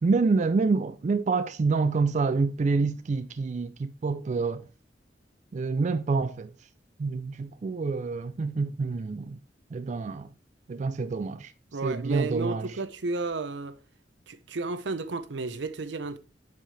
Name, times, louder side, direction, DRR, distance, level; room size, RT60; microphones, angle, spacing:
voice 1, 0.0-4.6 5.5-6.5 7.0-9.4 9.7-10.3 10.7-11.5 11.8-12.8, right 4 dB, 40° right, 0.3 m, -27 dB
voice 2, 11.7-13.8 14.3-16.2, right 3 dB, 80° right, 0.7 m, -32 dB
7.6 x 5.7 x 3.3 m
head